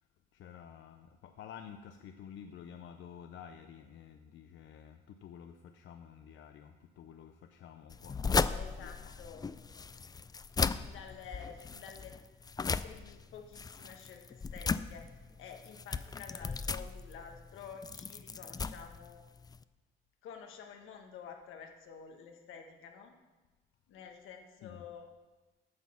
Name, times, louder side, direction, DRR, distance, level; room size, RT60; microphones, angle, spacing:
voice 1, 0.3-9.1 24.6-24.8, left 8 dB, 70° left, 7 dB, 0.6 m, -51 dB
sound 1, 7.9-19.6, left 5 dB, 20° left, 0.3 m, -36 dB
voice 2, 8.5-9.5 10.7-12.1 12.8-15.1 15.4-19.2 20.2-23.1 23.9-25.1, left 7 dB, 90° left, 3 dB, 1.4 m, -50 dB
9.5 x 6.2 x 7.3 m, 1.2 s
cardioid pair, 90°, 20 cm